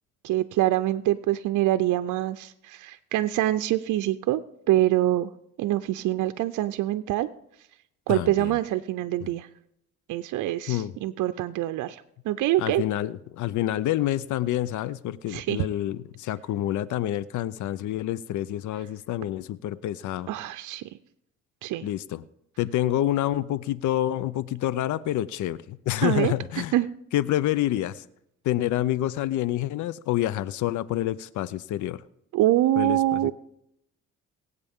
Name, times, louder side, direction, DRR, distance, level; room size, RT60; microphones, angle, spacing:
voice 1, 0.2-4.4 4.7-5.3 5.6-7.3 8.1-9.5 10.1-12.8 15.3-15.7 20.3-20.8 21.6-21.9 26.0-26.3 26.7-26.9 32.3-33.3, right 14 dB, 80° right, 10 dB, 0.6 m, -25 dB
voice 2, 8.1-8.6 9.2-9.3 10.7-10.9 12.6-20.3 21.8-22.2 22.6-26.7 27.1-28.0 28.4-32.0 32.8-33.3, left 13 dB, 75° left, 18 dB, 0.5 m, -28 dB
23.0 x 8.2 x 3.6 m, 0.79 s
cardioid pair, 90°, 30 cm